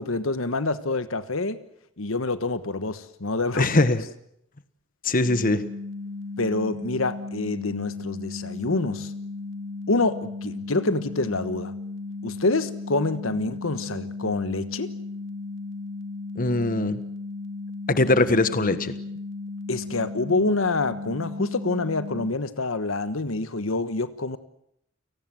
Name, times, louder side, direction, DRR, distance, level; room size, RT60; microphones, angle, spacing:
voice 1, 0.0-1.6 2.0-3.8 6.4-9.1 9.9-11.7 12.2-14.9 19.7-24.4, left 2 dB, 80° left, 12 dB, 1.3 m, -27 dB
voice 2, 3.6-4.0 5.0-5.6 16.4-17.0 17.9-18.9, left 2 dB, 45° left, 12 dB, 1.4 m, -21 dB
sound 1, 5.2-22.3, left 3 dB, 65° right, 1.4 m, -35 dB
30.0 x 18.5 x 7.8 m, 0.75 s
head